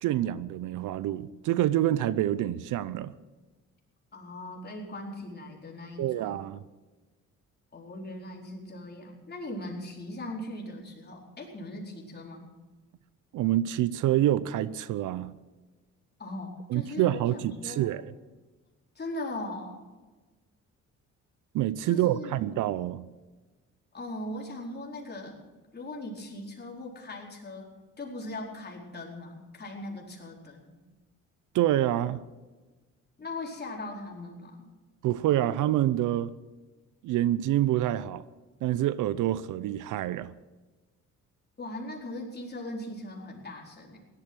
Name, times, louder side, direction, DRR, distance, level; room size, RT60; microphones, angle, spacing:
voice 1, 0.0-3.1 6.0-6.6 13.3-15.3 16.7-18.0 21.5-23.1 31.5-32.2 35.0-36.3 37.0-38.2 38.6-40.3, right 13 dB, 80° right, 0.7 m, -27 dB
voice 2, 4.1-6.4 7.7-12.4 16.2-17.9 18.9-19.8 21.8-22.4 23.9-25.4 25.7-27.7 28.0-30.7 33.2-34.7 41.6-44.0, left 1 dB, 35° left, 4.4 m, -39 dB
17.0 x 12.5 x 6.2 m
cardioid pair, 90°, 30 cm